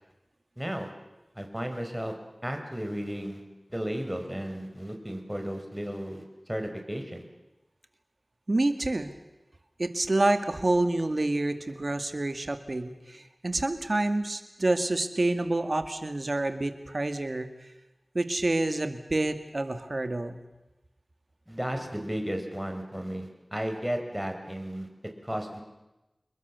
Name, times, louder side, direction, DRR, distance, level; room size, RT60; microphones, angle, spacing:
voice 1, 0.6-0.9 1.3-2.1 2.4-3.4 3.7-7.2 21.5-24.9 25.2-25.6, equal, 10° right, 4 dB, 4.7 m, -34 dB
voice 2, 8.5-9.1 9.8-17.5 18.1-20.4, right 2 dB, 55° right, 9 dB, 2.2 m, -28 dB
28.0 x 22.0 x 7.0 m, 1.0 s
wide cardioid pair, 50°, 0 cm